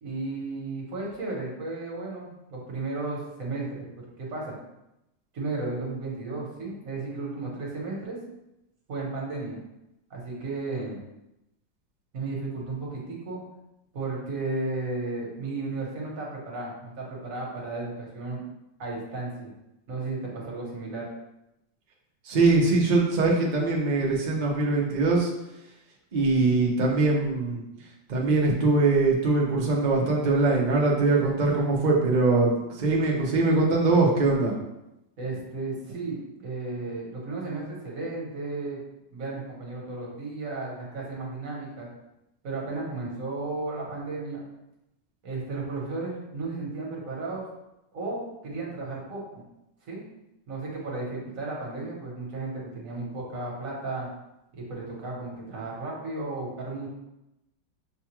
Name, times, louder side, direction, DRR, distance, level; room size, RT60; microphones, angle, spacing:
voice 1, 0.0-3.9 4.2-4.6 5.3-8.2 8.9-9.6 10.1-11.0 12.1-13.4 13.9-18.4 18.8-19.5 19.9-21.1 35.2-38.8 39.1-41.9 42.4-44.5 45.2-47.4 47.9-49.4 49.8-50.0 50.5-54.1 54.5-56.9, right 3 dB, 50° right, -3 dB, 1.4 m, -34 dB
voice 2, 22.2-25.3 26.1-27.6 28.1-34.5, right 3 dB, 80° right, -2 dB, 0.4 m, -22 dB
6.5 x 2.3 x 2.9 m, 0.90 s
omnidirectional pair, 2.0 m